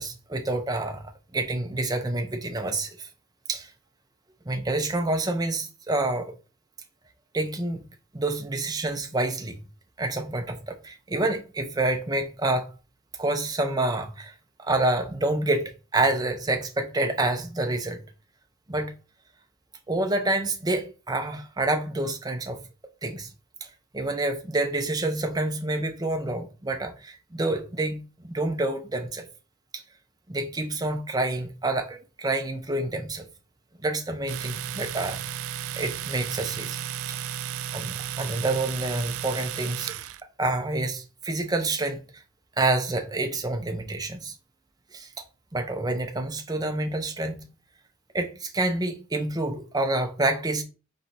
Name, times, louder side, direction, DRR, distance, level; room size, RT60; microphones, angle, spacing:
voice 1, 0.0-3.1 3.5-3.7 4.5-6.3 7.3-7.8 8.1-9.6 10.0-12.7 13.2-18.0 18.7-18.9 19.9-22.6 23.0-23.3 23.6-29.3 29.7-29.8 30.3-33.3 33.8-35.2 35.8-36.8 37.1-37.2 37.7-39.9 40.4-42.0 42.6-44.3 44.9-45.2 45.5-47.5 48.1-50.6, right 2 dB, 15° right, 0.6 m, -28 dB
Domestic sounds home sounds, 34.3-40.2, right 10 dB, 70° right, 0.3 m, -34 dB
4.2 x 3.2 x 4.0 m
head